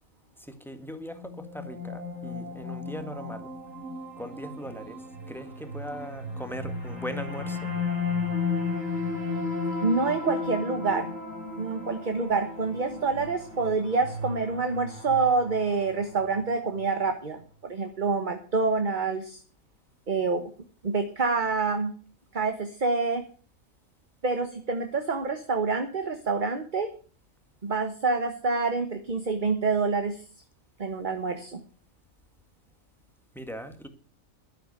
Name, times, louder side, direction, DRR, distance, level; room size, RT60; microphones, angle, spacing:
voice 1, 0.4-3.5 4.2-7.7 33.3-33.9, equal, ahead, 1.7 m, -39 dB
sound 1, 1.1-16.4, left 3 dB, 80° right, 5.9 m, -34 dB
voice 2, 9.8-11.1 11.6-19.4 20.1-20.5 20.8-21.9 22.3-23.2 24.2-26.9 27.6-30.2 30.8-31.6, right 4 dB, 40° right, 1.3 m, -27 dB
12.0 x 10.0 x 6.7 m
omnidirectional pair, 1.4 m